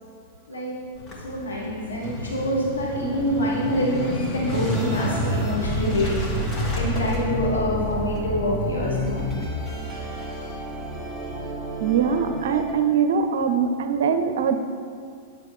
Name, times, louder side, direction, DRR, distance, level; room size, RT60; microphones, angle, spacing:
Motorcycle / Engine starting, 1.0-8.2, equal, 30° left, 1.9 m, -30 dB
voice 1, 1.2-6.1 6.5-9.2 9.6-9.8, equal, 85° left, -4 dB, 1.3 m, -26 dB
sound 1, 4.7-12.7, equal, ahead, 1.6 m, -31 dB
voice 2, 11.8-14.6, right 6 dB, 70° right, 8 dB, 0.5 m, -22 dB
9.2 x 6.9 x 3.3 m, 2.2 s
hypercardioid pair, 110°, 0 cm